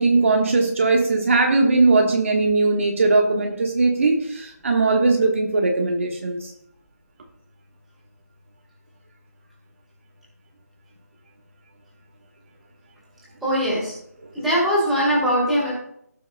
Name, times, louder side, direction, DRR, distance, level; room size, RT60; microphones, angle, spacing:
voice 1, 0.0-6.5, right 3 dB, 50° right, 1 dB, 1.3 m, -19 dB
voice 2, 13.4-13.9 14.3-15.7, equal, ahead, -9 dB, 3.0 m, -21 dB
17.5 x 6.3 x 2.3 m, 0.72 s
figure-of-eight pair, 165°, 9 cm